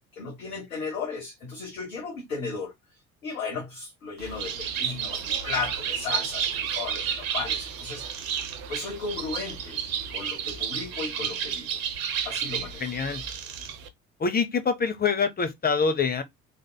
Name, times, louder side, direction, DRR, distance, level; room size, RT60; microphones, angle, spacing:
voice 1, 0.1-2.7 3.2-9.8 10.1-11.8 12.2-12.8, left 4 dB, 80° left, 1.1 m, -35 dB
Bird, 4.2-13.9, right 8 dB, 70° right, 0.8 m, -31 dB
voice 2, 12.8-13.2 14.2-16.2, left 5 dB, 20° left, 1.0 m, -25 dB
3.6 x 3.4 x 2.2 m
figure-of-eight pair, 55°, 41 cm